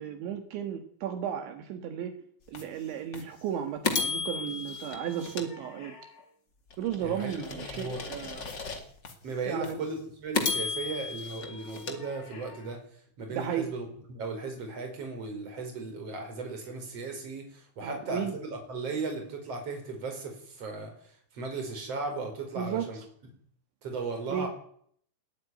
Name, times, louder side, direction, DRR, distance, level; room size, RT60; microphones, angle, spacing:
voice 1, 0.0-2.1 2.5-5.9 6.8-8.4 9.5-9.8 13.3-13.7 17.8-18.3 22.6-22.9 24.3-24.5, right 9 dB, 75° right, 6 dB, 3.9 m, -34 dB
sound 1, 2.5-2.6 3.1-3.2 3.8-6.2 6.7-9.1 9.6-9.7 10.3-12.7, left 5 dB, 35° left, 1.8 m, -34 dB
voice 2, 7.0-8.0 9.2-12.8 13.2-23.0 23.8-24.5, right 3 dB, 30° right, 4 dB, 5.4 m, -36 dB
21.0 x 13.5 x 9.4 m, 0.64 s
omnidirectional pair, 5.5 m